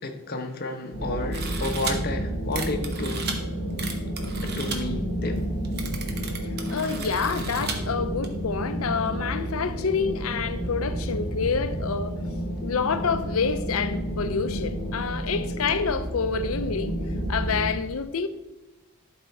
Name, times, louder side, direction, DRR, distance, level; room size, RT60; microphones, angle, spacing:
voice 1, 0.0-3.3 4.4-5.4, left 2 dB, 45° left, 0.9 m, -31 dB
sound 1, 0.9-17.7, equal, 25° right, 2.8 m, -31 dB
sound 2, 1.3-1.9 2.5-3.4 3.8-4.8 5.4-5.5 5.6-7.8 8.2-8.3, right 5 dB, 50° right, 1.1 m, -34 dB
voice 2, 6.7-12.1 12.6-16.9 17.3-18.3, left 5 dB, 80° left, 0.6 m, -27 dB
11.5 x 4.4 x 4.3 m
head